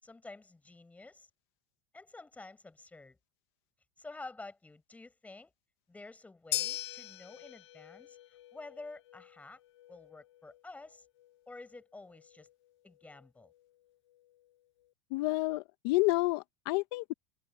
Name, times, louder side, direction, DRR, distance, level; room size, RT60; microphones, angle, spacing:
voice 1, 0.0-1.3 1.9-3.2 4.0-5.5 5.9-8.2 8.5-9.6 9.9-11.0 11.5-12.5 12.8-13.5, left 3 dB, 10° left, 7.8 m, -50 dB
sound 1, 6.5-14.9, left 14 dB, 90° left, 5.8 m, -43 dB
voice 2, 15.1-17.1, left 22 dB, 65° left, 1.0 m, -30 dB
supercardioid pair, 120°, 14 cm